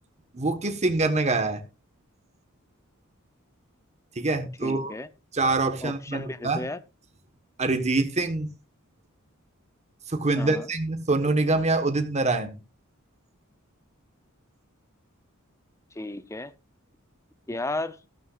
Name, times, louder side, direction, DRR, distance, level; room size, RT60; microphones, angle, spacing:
voice 1, 0.3-1.6 4.2-4.9 5.3-6.6 7.6-8.5 10.1-12.6, right 2 dB, 30° right, 1.3 m, -25 dB
voice 2, 4.6-5.1 5.8-6.8 10.4-10.7 16.0-16.5 17.5-18.0, left 2 dB, 15° left, 0.6 m, -33 dB
13.0 x 12.5 x 2.5 m
head